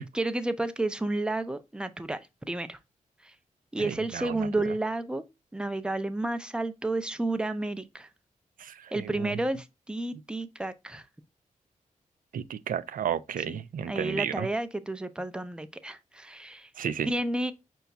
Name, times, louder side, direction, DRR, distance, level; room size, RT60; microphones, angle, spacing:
voice 1, 0.0-2.2 2.5-2.8 3.2-3.3 3.7-5.2 5.5-8.1 8.9-11.1 13.5-13.6 13.9-16.7 17.1-17.5, right 2 dB, 5° right, 0.4 m, -31 dB
voice 2, 3.8-4.5 8.6-9.4 12.3-14.5 16.8-17.1, right 8 dB, 85° right, 0.4 m, -33 dB
5.7 x 2.3 x 4.0 m
wide cardioid pair, 145°, 14 cm